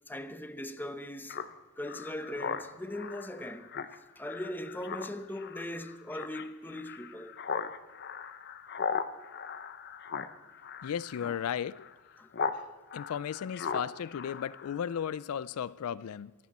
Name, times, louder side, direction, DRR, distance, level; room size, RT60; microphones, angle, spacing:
voice 1, 0.1-1.4 1.8-3.7 4.2-7.4 12.2-12.3, left 1 dB, 10° left, 0.8 m, -39 dB
Speech synthesizer, 1.3-12.6 12.9-15.1, left 6 dB, 50° left, 0.8 m, -39 dB
voice 2, 10.8-11.9 12.5-12.6 12.9-16.3, left 8 dB, 75° left, 0.4 m, -35 dB
23.5 x 12.0 x 4.2 m
head